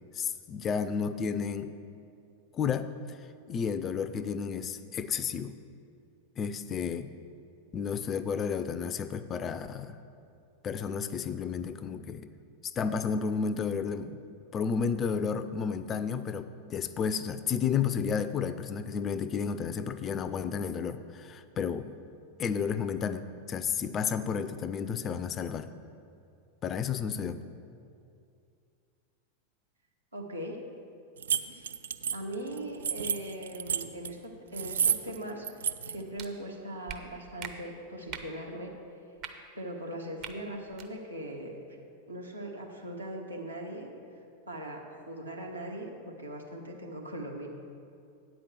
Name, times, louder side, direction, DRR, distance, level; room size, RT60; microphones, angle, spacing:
voice 1, 0.2-1.7 2.5-2.9 3.5-5.5 6.4-7.1 7.7-10.0 10.6-12.3 12.6-14.2 14.5-21.9 22.4-25.7 26.6-27.4, left 6 dB, 25° left, 12 dB, 0.4 m, -32 dB
voice 2, 30.1-30.6 31.5-31.7 32.1-38.7 39.5-41.6 42.1-43.9 44.5-47.5, right 1 dB, 85° right, -1 dB, 1.3 m, -40 dB
sound 1, 31.2-34.1 34.5-35.2 35.4-36.0, right 8 dB, 65° right, 0.3 m, -30 dB
sound 2, 36.2-36.3 36.9-37.0 37.4-37.5 38.1-38.3 39.2-39.3 40.2-40.3 40.7-40.9, right 9 dB, 40° right, 0.7 m, -40 dB
8.8 x 5.1 x 7.8 m, 2.4 s
figure-of-eight pair, 90°, 0 cm